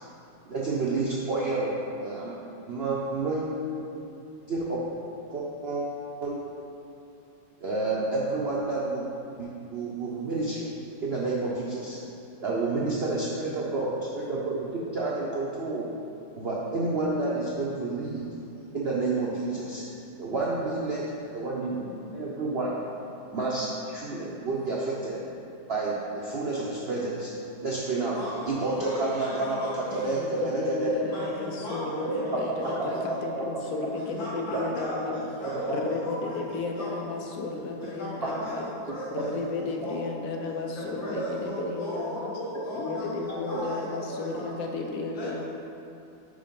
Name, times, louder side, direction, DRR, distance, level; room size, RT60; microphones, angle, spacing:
voice 1, 0.5-2.4 2.7-3.5 3.9-4.0 4.3-4.8 5.3-5.8 6.2-6.5 7.6-9.1 9.4-10.7 11.0-12.0 12.4-15.9 16.3-18.3 18.7-19.8 20.2-22.8 23.3-25.2 25.7-27.3 27.6-28.2 28.5-30.9 32.0-33.0 33.8-33.9 34.5-34.6 35.4-35.6 43.5-43.6, right 3 dB, 85° right, -5 dB, 0.5 m, -30 dB
voice 2, 28.2-30.4 31.1-33.1 33.9-36.4 36.8-37.0 37.8-40.1 40.8-44.6 45.1-45.4, equal, 90° left, -10 dB, 1.9 m, -37 dB
voice 3, 30.2-35.2 35.7-38.7 39.1-42.3 42.7-45.4, left 4 dB, 65° left, 2 dB, 0.8 m, -33 dB
5.1 x 5.1 x 5.3 m, 2.7 s
omnidirectional pair, 2.0 m